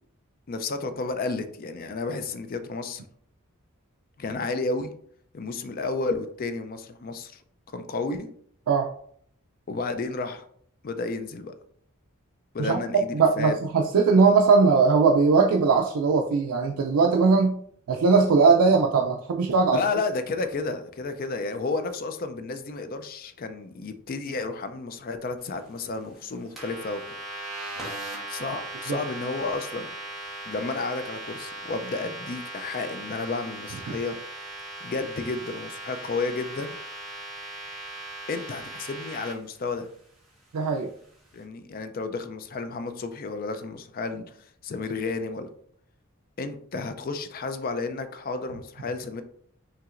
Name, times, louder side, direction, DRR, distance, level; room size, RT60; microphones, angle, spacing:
voice 1, 0.5-3.0 4.2-4.9 5.3-7.4 7.7-8.3 9.7-10.4 10.8-11.5 12.5-13.5 19.7-27.0 28.3-29.9 30.5-34.2 34.8-36.8 38.3-39.9 41.3-44.4 44.6-45.5 46.4-49.2, left 3 dB, 40° left, 9 dB, 0.4 m, -31 dB
voice 2, 13.1-17.6 17.9-19.8 28.9-29.0 40.5-40.9, right 4 dB, 85° right, 1 dB, 0.4 m, -20 dB
sound 1, 26.6-39.3, right 1 dB, ahead, 1.3 m, -38 dB
5.7 x 2.9 x 2.5 m, 0.63 s
head